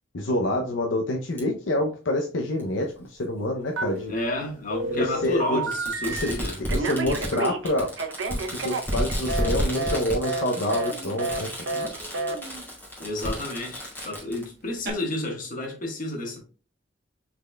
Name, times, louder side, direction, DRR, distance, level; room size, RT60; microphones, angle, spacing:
voice 1, 0.1-4.1 4.9-5.6 6.1-6.2 6.7-7.9 8.5-11.5, left 1 dB, 75° left, 0.6 m, -27 dB
Fireworks, 1.4-1.5 2.6-2.7 4.0-4.1 5.7-14.4, equal, 10° left, 2.0 m, -32 dB
Telephone, 3.8-4.4 4.7-6.3 6.7-9.5 9.8-10.0 10.2-10.4 10.7-10.9 11.2-11.4 11.7-11.9 12.1-12.4, right 2 dB, 75° right, 0.7 m, -29 dB
voice 2, 4.1-6.6 13.0-16.5, left 2 dB, 45° left, 1.4 m, -31 dB
Human voice, 10.4-14.9, right 3 dB, 55° right, 1.0 m, -44 dB
5.2 x 4.2 x 2.2 m
head